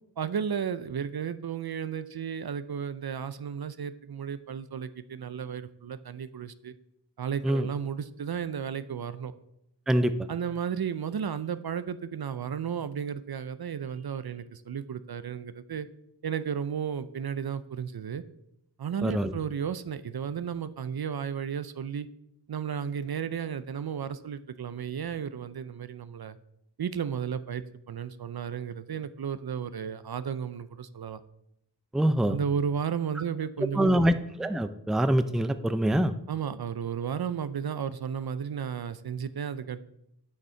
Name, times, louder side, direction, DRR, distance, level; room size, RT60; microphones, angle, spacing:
voice 1, 0.2-6.7 7.2-9.3 10.3-15.9 16.2-18.2 18.8-22.1 22.5-26.4 26.8-31.2 32.3-34.2 36.3-39.8, right 7 dB, 60° right, 13 dB, 0.5 m, -33 dB
voice 2, 19.0-19.3 31.9-32.4 33.7-34.1 34.4-36.1, right 1 dB, ahead, 11 dB, 0.4 m, -24 dB
8.2 x 6.2 x 4.4 m, 0.80 s
wide cardioid pair, 45°, 42 cm